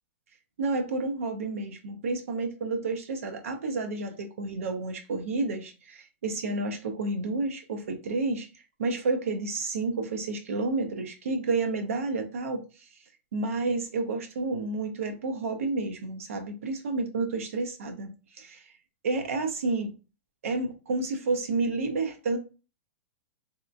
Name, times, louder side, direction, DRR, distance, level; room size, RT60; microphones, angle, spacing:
voice 1, 0.6-8.5 8.8-12.6 13.3-18.1 18.4-18.7 19.0-19.9 20.4-22.4, right 3 dB, 85° right, 0.6 m, -30 dB
2.9 x 2.3 x 2.4 m
supercardioid pair, 155°, 7 cm